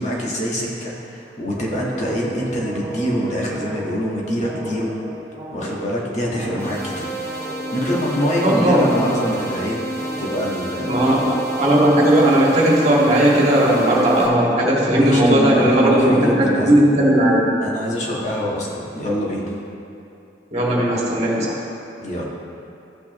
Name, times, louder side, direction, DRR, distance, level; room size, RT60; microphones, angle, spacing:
voice 1, 0.0-4.9 5.5-7.1 7.7-9.8 10.2-11.1 14.9-16.7 17.6-19.5 22.0-22.2, equal, 40° left, -4 dB, 1.5 m, -24 dB
sound 1, 1.5-17.0, right 1 dB, 20° right, 2.2 m, -34 dB
sound 2, 6.6-14.3, right 1 dB, 15° left, 1.9 m, -30 dB
voice 2, 8.4-9.0 10.9-17.5 20.5-21.6, right 1 dB, 35° right, -5 dB, 1.9 m, -16 dB
14.0 x 5.9 x 3.1 m, 2.7 s
head